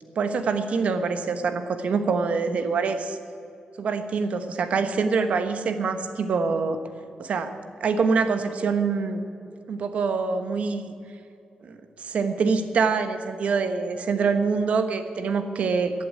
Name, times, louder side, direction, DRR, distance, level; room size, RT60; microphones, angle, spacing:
voice 1, 0.2-3.2 3.8-6.8 7.2-9.2 9.7-10.9 11.6-15.9, right 5 dB, 60° right, 9 dB, 1.1 m, -25 dB
14.5 x 8.6 x 8.8 m, 2.7 s
wide cardioid pair, 150°, 3 cm